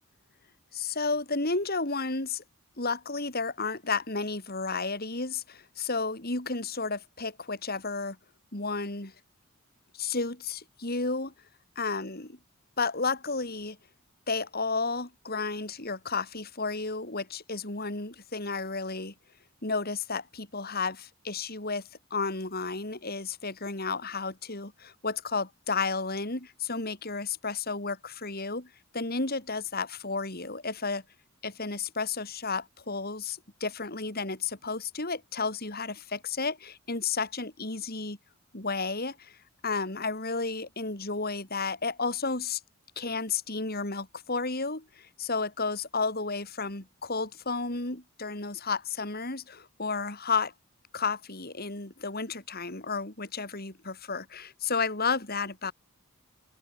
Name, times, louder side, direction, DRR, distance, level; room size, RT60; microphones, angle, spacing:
voice 1, 0.7-2.4 2.8-8.2 8.5-9.1 9.9-11.3 11.8-12.4 12.8-13.8 14.3-19.1 19.6-31.0 31.4-38.2 38.5-39.4 39.6-42.6 43.0-50.5 50.9-55.7, left 4 dB, 45° left, 3.9 m, -32 dB
open air
head